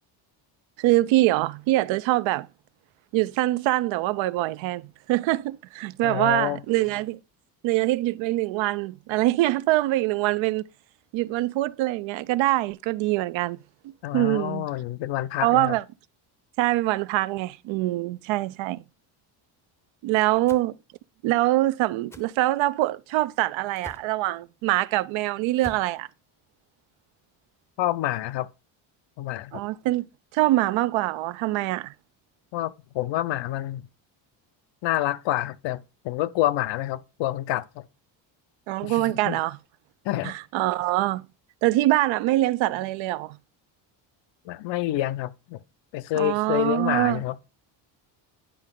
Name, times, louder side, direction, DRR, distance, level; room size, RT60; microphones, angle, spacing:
voice 1, 0.8-2.5 3.1-7.2 7.6-10.6 11.1-13.6 13.8-14.7 15.4-15.8 16.6-18.8 20.0-20.7 21.2-26.1 29.5-30.1 30.3-31.9 38.7-39.6 40.2-41.3 41.6-43.4 46.1-47.2, right 17 dB, 70° right, 0.6 m, -24 dB
voice 2, 6.0-6.6 14.0-15.8 27.8-28.5 29.2-29.6 32.5-33.8 34.8-37.7 38.8-39.4 40.0-40.4 44.5-45.6 45.9-47.4, left 14 dB, 65° left, 0.7 m, -28 dB
sound 1, 20.5-20.7 22.1-22.3 23.7-24.1 25.5-25.9, left 1 dB, 5° left, 0.6 m, -43 dB
10.0 x 4.4 x 3.7 m
cardioid pair, 110°, 48 cm